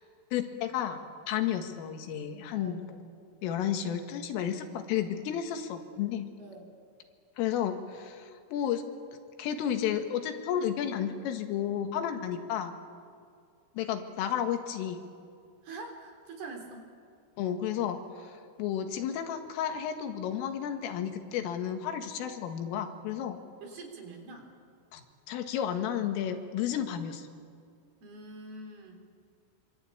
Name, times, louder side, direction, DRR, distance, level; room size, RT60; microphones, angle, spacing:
voice 1, 0.3-1.0 1.3-3.0 3.4-6.3 7.4-8.8 9.4-12.7 13.8-15.0 17.4-18.0 18.6-23.4 24.9-27.3, left 9 dB, 85° left, 6 dB, 4.3 m, -32 dB
voice 2, 6.4-6.7 15.6-16.9 23.6-24.5 28.0-29.0, right 3 dB, 55° right, 3 dB, 5.3 m, -44 dB
26.0 x 25.0 x 8.8 m, 2.3 s
omnidirectional pair, 5.7 m